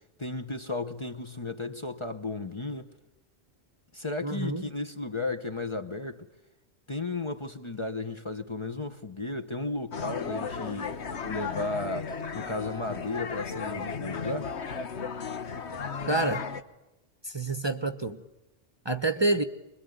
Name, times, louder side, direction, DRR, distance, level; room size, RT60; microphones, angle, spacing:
voice 1, 0.0-2.9 3.9-6.3 6.9-11.0 11.2-14.5, left 3 dB, 30° left, 1.0 m, -34 dB
voice 2, 4.2-4.7 16.1-16.4 17.2-18.2 18.8-19.4, right 2 dB, 25° right, 1.0 m, -28 dB
sound 1, 9.9-16.6, left 5 dB, 80° left, 1.5 m, -35 dB
26.0 x 22.0 x 9.4 m
omnidirectional pair, 1.1 m